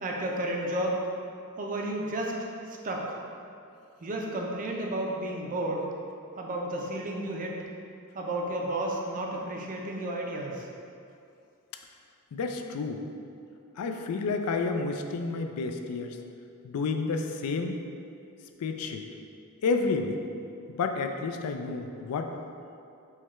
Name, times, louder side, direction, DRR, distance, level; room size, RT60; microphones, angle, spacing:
voice 1, 0.0-1.0 1.6-2.3 2.7-3.2 4.0-5.9 6.4-7.6 8.1-10.7, right 1 dB, 35° right, 0 dB, 0.5 m, -32 dB
voice 2, 12.3-13.0 13.8-16.2 16.6-17.7 18.6-19.1 19.6-20.2 20.7-22.3, left 4 dB, 85° left, 5 dB, 0.4 m, -30 dB
4.7 x 2.3 x 4.2 m, 2.6 s
head